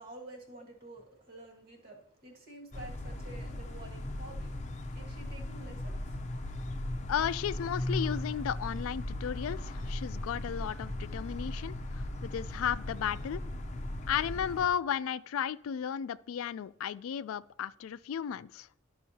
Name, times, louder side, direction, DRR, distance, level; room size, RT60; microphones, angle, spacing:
voice 1, 0.0-6.8, right 2 dB, 45° right, 1.6 m, -50 dB
sound 1, 2.7-14.7, left 1 dB, 35° left, 0.6 m, -37 dB
voice 2, 7.1-13.4 14.1-18.7, left 9 dB, 80° left, 0.3 m, -34 dB
12.5 x 5.5 x 2.8 m
head